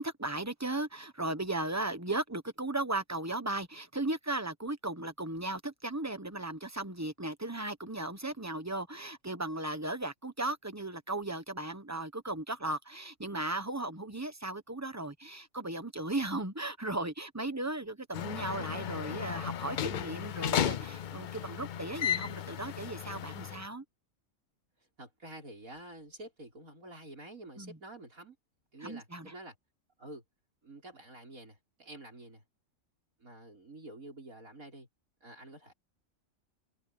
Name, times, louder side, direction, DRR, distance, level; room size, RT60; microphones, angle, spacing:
voice 1, 0.0-23.8 27.6-27.8 28.8-29.3, right 2 dB, 15° right, 1.1 m, -36 dB
sound 1, 18.1-23.7, left 9 dB, 80° left, 0.4 m, -35 dB
voice 2, 25.0-28.4 28.7-29.5 30.0-30.2 30.6-32.4 33.2-34.9 35.2-35.7, right 1 dB, 85° right, 6.5 m, -48 dB
omnidirectional pair, 1.4 m